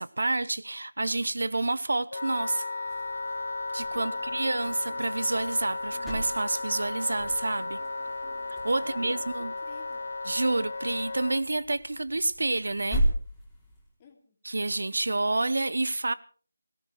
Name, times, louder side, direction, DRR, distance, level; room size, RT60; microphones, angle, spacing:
voice 1, 0.0-2.7 3.7-7.8 8.6-9.5 10.2-13.0 14.4-16.1, right 2 dB, 70° right, 0.8 m, -29 dB
Wind instrument woodwind instrument, 2.1-11.4, left 3 dB, 60° left, 0.9 m, -35 dB
sound 1, 2.8-13.9, right 1 dB, ahead, 3.7 m, -37 dB
voice 2, 3.9-4.5 8.7-10.1 14.0-14.4, left 5 dB, 20° left, 2.8 m, -51 dB
sound 2, 4.3-9.3, right 4 dB, 40° right, 2.6 m, -54 dB
18.5 x 16.5 x 4.6 m
figure-of-eight pair, 165°, 0 cm